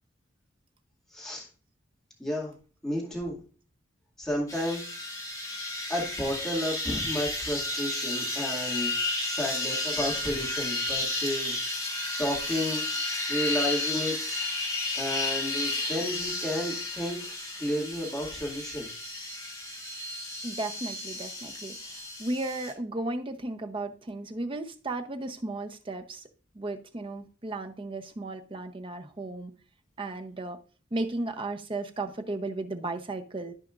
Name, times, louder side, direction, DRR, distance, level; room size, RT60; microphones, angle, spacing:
voice 1, 1.1-1.5 2.2-2.5 2.8-3.4 4.2-4.8 5.9-8.9 9.3-11.5 12.2-12.8 13.3-14.5 14.9-17.3 17.6-18.9, left 1 dB, 5° left, -4 dB, 2.2 m, -32 dB
sound 1, 4.5-22.7, left 2 dB, 20° left, 2.0 m, -32 dB
voice 2, 20.4-21.7 22.2-26.2 26.5-29.5 30.0-30.6 30.9-33.5, right 2 dB, 30° right, 7 dB, 0.7 m, -34 dB
13.5 x 5.0 x 2.5 m, 0.37 s
head